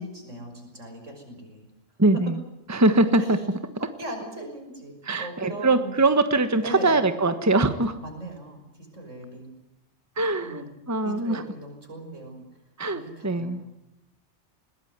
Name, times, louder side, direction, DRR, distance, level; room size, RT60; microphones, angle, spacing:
voice 1, 0.0-1.7 2.1-2.3 3.2-3.4 4.0-5.9 6.6-7.0 8.0-9.6 10.4-10.7 11.0-12.4 12.9-13.7, right 1 dB, 80° right, 3 dB, 6.5 m, -39 dB
voice 2, 2.0-2.3 2.7-3.4 5.0-8.0 10.2-11.4 12.8-13.6, right 2 dB, 15° right, 10 dB, 1.3 m, -22 dB
21.0 x 20.0 x 9.5 m, 0.92 s
omnidirectional pair, 1.3 m